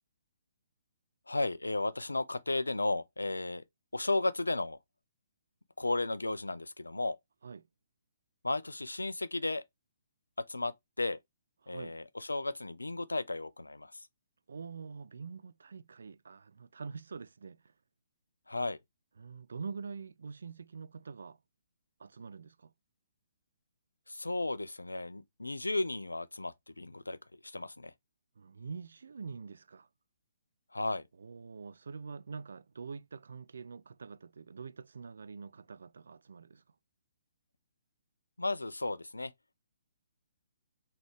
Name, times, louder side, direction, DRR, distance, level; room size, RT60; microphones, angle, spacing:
voice 1, 1.3-3.6 3.9-4.8 5.8-7.2 8.4-9.6 10.5-11.2 11.7-14.0 18.5-18.8 24.1-27.9 30.7-31.0 38.4-39.3, left 2 dB, 80° left, 0.4 m, -34 dB
voice 2, 11.6-11.9 14.5-17.6 19.2-21.4 22.0-22.7 28.4-29.9 31.2-36.6, right 5 dB, 60° right, 0.3 m, -45 dB
4.0 x 3.3 x 3.1 m
figure-of-eight pair, 130°, 0 cm